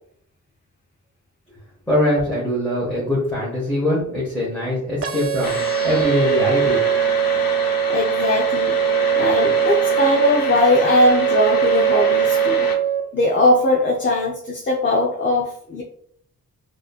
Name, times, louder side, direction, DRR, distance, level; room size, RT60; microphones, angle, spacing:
voice 1, 1.9-5.5 5.8-6.8, left 1 dB, 5° left, -8 dB, 1.4 m, -22 dB
sound 1, 5.0-13.0, right 10 dB, 45° right, 0.5 m, -21 dB
sound 2, 5.4-12.7, left 4 dB, 90° left, 0.7 m, -28 dB
voice 2, 7.9-8.8 9.2-12.7 13.1-15.8, left 1 dB, 35° left, -1 dB, 0.6 m, -19 dB
4.7 x 2.8 x 2.4 m, 0.70 s
wide cardioid pair, 85°, 34 cm